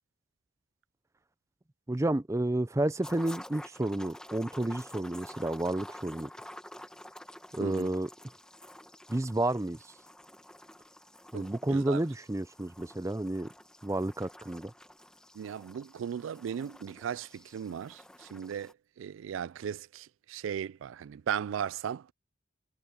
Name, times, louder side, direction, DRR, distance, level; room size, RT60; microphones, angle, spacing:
voice 1, 1.9-6.3 7.5-8.1 9.1-9.8 11.3-13.5 13.8-14.7, right 1 dB, 15° right, 0.5 m, -31 dB
sound 1, 3.0-18.7, left 1 dB, 5° left, 1.3 m, -50 dB
voice 2, 7.6-7.9 11.3-12.0 15.3-22.1, right 8 dB, 80° right, 0.3 m, -37 dB
head